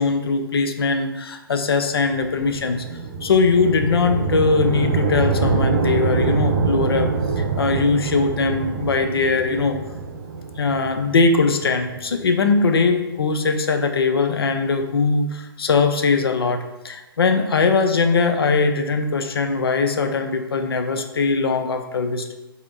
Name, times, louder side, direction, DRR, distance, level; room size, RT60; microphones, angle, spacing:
voice 1, 0.0-2.8 3.2-7.1 7.4-9.8 10.6-22.3, left 4 dB, 75° left, 6 dB, 0.4 m, -20 dB
sound 1, 2.0-12.3, right 4 dB, 45° right, 0.3 m, -24 dB
4.1 x 2.5 x 2.3 m, 0.99 s
figure-of-eight pair, 120°, 13 cm